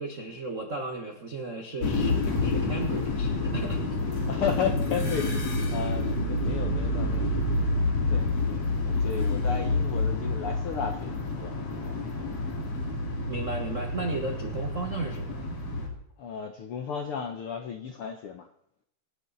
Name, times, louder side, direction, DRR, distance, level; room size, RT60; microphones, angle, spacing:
voice 1, 0.0-3.8 13.3-15.4, right 3 dB, 65° right, 3 dB, 0.7 m, -35 dB
sound 1, 1.8-15.9, left 2 dB, 50° left, 3.7 m, -28 dB
voice 2, 4.3-7.3 8.1-11.5 16.2-18.5, left 7 dB, 70° left, 5 dB, 1.3 m, -34 dB
25.5 x 9.2 x 4.1 m, 0.72 s
omnidirectional pair, 3.8 m